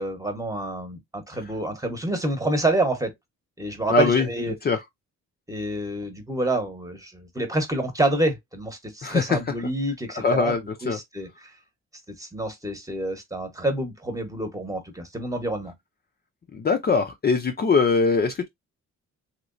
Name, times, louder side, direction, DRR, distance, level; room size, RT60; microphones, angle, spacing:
voice 1, 0.0-3.1 3.6-4.5 5.5-10.6 10.8-11.5 12.1-15.7, right 1 dB, 10° right, 1.1 m, -28 dB
voice 2, 3.9-4.3 4.6-4.8 9.0-9.4 10.1-11.0 16.5-18.5, left 4 dB, 30° left, 0.6 m, -22 dB
3.1 x 2.9 x 2.5 m
cardioid pair, 90°, 30 cm